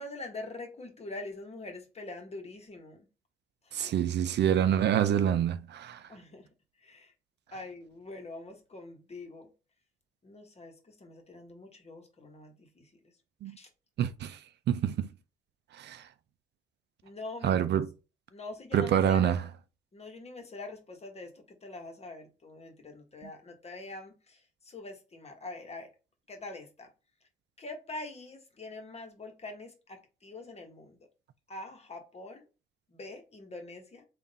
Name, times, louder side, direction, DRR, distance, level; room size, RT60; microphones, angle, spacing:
voice 1, 0.0-3.1 3.6-3.9 6.1-6.5 6.8-7.1 7.5-9.5 10.2-12.9 13.5-13.7 17.0-17.7 18.3-19.4 19.9-25.9 26.3-26.9 27.6-31.0 31.5-32.4 32.9-34.1, left 2 dB, 30° left, 1.2 m, -44 dB
voice 2, 3.7-6.1 13.4-13.6 14.0-14.4 14.7-15.1 15.7-16.0 17.4-17.9 18.7-19.4, right 9 dB, 60° right, 0.4 m, -26 dB
3.6 x 2.5 x 4.0 m
cardioid pair, 90°, 20 cm